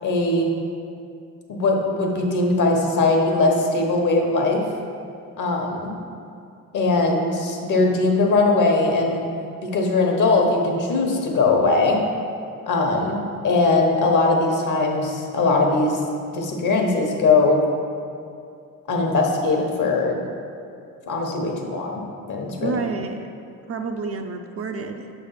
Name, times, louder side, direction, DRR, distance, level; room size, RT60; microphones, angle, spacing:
voice 1, 0.0-0.5 1.5-4.6 5.4-6.0 6.7-9.2 9.6-12.0 12.7-16.0 16.3-17.6 18.9-20.2 21.1-22.0 22.3-22.8, left 3 dB, 60° left, 1 dB, 1.1 m, -20 dB
voice 2, 22.6-23.3 23.7-25.1, right 4 dB, 40° right, 5 dB, 0.5 m, -29 dB
6.2 x 3.4 x 5.7 m, 2.4 s
cardioid pair, 85°, 35 cm